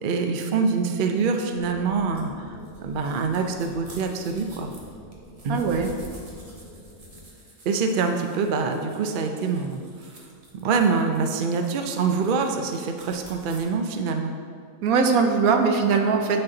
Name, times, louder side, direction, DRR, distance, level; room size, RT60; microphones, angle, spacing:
voice 1, 0.0-2.3 2.8-4.7 5.4-5.6 7.7-9.8 10.6-14.3, right 5 dB, 60° right, 5 dB, 0.5 m, -25 dB
sound 1, 1.5-7.3, left 1 dB, 45° left, 1.2 m, -47 dB
sound 2, 2.1-13.6, right 1 dB, 30° right, 0.9 m, -49 dB
voice 2, 5.5-5.9 14.8-16.4, right 5 dB, 75° right, 5 dB, 1.1 m, -21 dB
9.1 x 4.1 x 3.9 m, 2.2 s
omnidirectional pair, 1.5 m